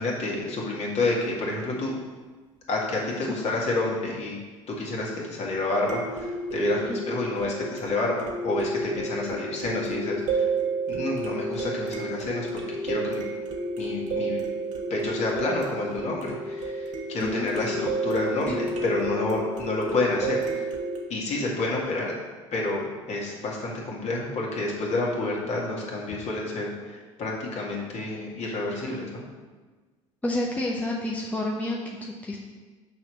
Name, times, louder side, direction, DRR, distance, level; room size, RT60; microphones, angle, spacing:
voice 1, 0.0-2.0 2.7-4.4 4.7-10.5 10.9-13.2 13.8-14.4 14.9-20.7 21.1-22.1 22.5-29.2, left 2 dB, 45° left, -3 dB, 2.1 m, -29 dB
sound 1, 1.2-1.3 5.9-21.0, right 2 dB, 45° right, 1.4 m, -31 dB
voice 2, 6.9-7.2 17.2-17.5 18.5-18.7 30.2-32.4, left 1 dB, 10° left, -2 dB, 0.9 m, -30 dB
6.2 x 4.6 x 5.8 m, 1.4 s
figure-of-eight pair, 65°, 16 cm